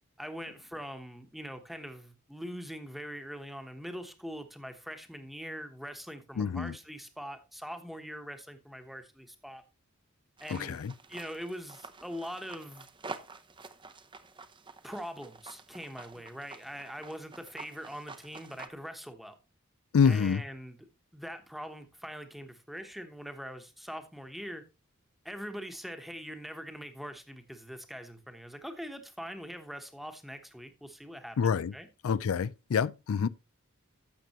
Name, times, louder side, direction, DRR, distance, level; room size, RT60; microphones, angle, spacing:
voice 1, 0.2-9.6 10.4-10.8 11.1-12.9 14.8-19.4 20.0-20.9 21.1-24.6 25.2-31.9, equal, ahead, 1.1 m, -42 dB
voice 2, 6.4-6.7 10.5-10.9 19.9-20.4 31.4-31.7 32.0-33.3, left 6 dB, 80° left, 0.4 m, -27 dB
sound 1, 10.4-18.7, right 4 dB, 25° right, 0.8 m, -48 dB
12.0 x 7.6 x 3.0 m
head